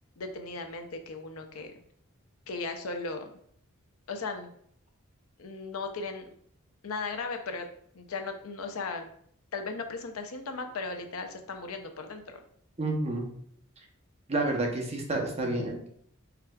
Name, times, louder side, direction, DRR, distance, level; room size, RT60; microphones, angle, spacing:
voice 1, 0.2-1.7 2.5-3.4 4.1-4.5 5.4-6.3 6.8-7.7 7.9-9.1 9.5-12.4, left 3 dB, 75° left, 6 dB, 0.6 m, -36 dB
voice 2, 12.8-13.2 14.3-15.9, right 2 dB, 30° right, 1 dB, 0.7 m, -29 dB
4.7 x 3.6 x 2.3 m, 0.65 s
head